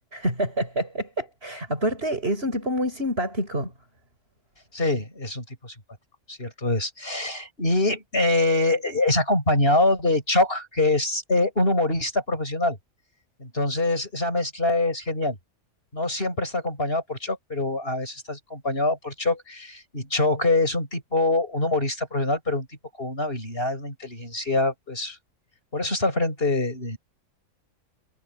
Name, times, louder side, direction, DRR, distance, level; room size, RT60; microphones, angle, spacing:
voice 1, 0.1-3.7, equal, 45° right, 7.5 m, -27 dB
voice 2, 4.7-5.7 6.3-12.8 13.4-15.4 15.9-22.7 23.0-25.2 25.7-27.0, left 2 dB, 40° left, 6.9 m, -24 dB
omnidirectional pair, 1.5 m